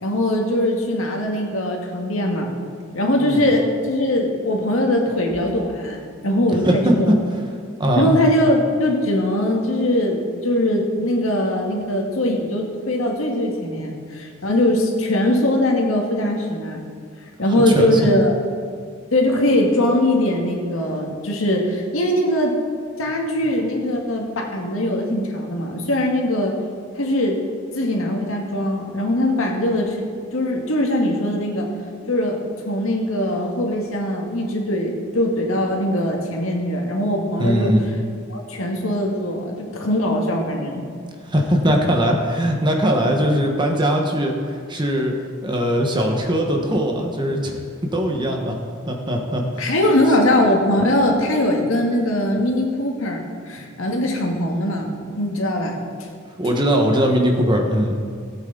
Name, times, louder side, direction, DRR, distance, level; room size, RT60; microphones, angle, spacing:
voice 1, 0.0-2.5 2.9-7.1 8.0-16.8 17.4-18.3 19.1-22.6 23.0-26.6 27.0-27.4 27.7-30.1 30.3-31.7 32.1-37.7 38.3-40.9 49.6-54.9 55.2-56.1, left 1 dB, 80° left, 1 dB, 1.8 m, -21 dB
voice 2, 3.2-3.5 6.6-7.2 7.8-8.2 17.7-18.0 37.4-37.8 41.3-45.1 45.4-47.5 47.9-48.5 48.9-49.7 56.4-58.0, equal, 20° right, 1 dB, 1.4 m, -20 dB
17.5 x 8.3 x 4.0 m, 2.1 s
head